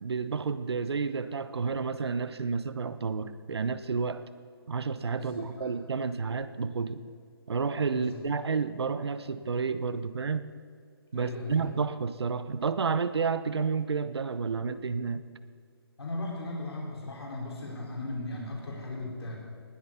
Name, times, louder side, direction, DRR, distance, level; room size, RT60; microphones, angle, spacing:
voice 1, 0.0-4.2 4.7-7.1 7.5-10.5 11.1-15.2, right 5 dB, 80° right, 13 dB, 0.9 m, -30 dB
voice 2, 5.1-5.8 7.9-8.2 9.2-9.3 11.1-11.7 16.0-19.4, left 2 dB, 80° left, -2 dB, 4.5 m, -37 dB
20.0 x 8.0 x 5.6 m, 2.1 s
hypercardioid pair, 160°, 13 cm